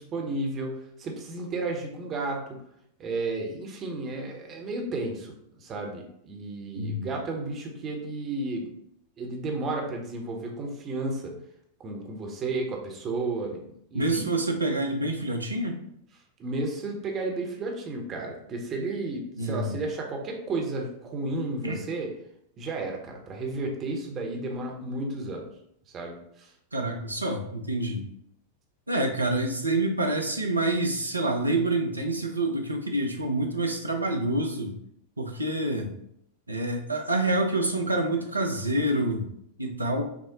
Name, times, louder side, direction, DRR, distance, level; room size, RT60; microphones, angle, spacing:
voice 1, 0.0-2.6 3.0-8.7 9.2-11.3 11.8-13.6 13.9-14.3 16.4-22.1 22.6-25.5 25.9-26.5, right 2 dB, 30° right, 1 dB, 0.8 m, -33 dB
voice 2, 6.8-7.1 13.9-15.7 19.4-19.8 21.6-21.8 26.7-28.0 28.9-34.7 35.2-35.9 36.5-39.3 39.6-40.1, right 2 dB, 85° right, 3 dB, 0.5 m, -27 dB
5.9 x 2.0 x 2.9 m, 0.73 s
figure-of-eight pair, 90°, 0 cm